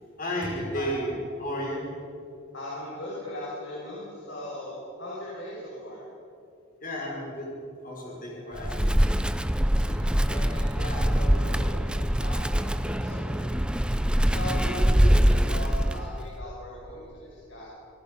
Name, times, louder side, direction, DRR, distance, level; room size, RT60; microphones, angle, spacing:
voice 1, 0.2-1.8 6.8-7.5 7.8-9.0 13.4-13.5 14.6-15.1, equal, 45° left, -3 dB, 5.4 m, -33 dB
voice 2, 2.5-6.0 9.8-13.5 14.3-14.8 15.2-17.7, left 1 dB, 65° left, -5 dB, 5.9 m, -39 dB
Wind, 8.6-16.3, equal, 5° right, 0.5 m, -24 dB
27.0 x 19.0 x 5.4 m, 2.6 s
head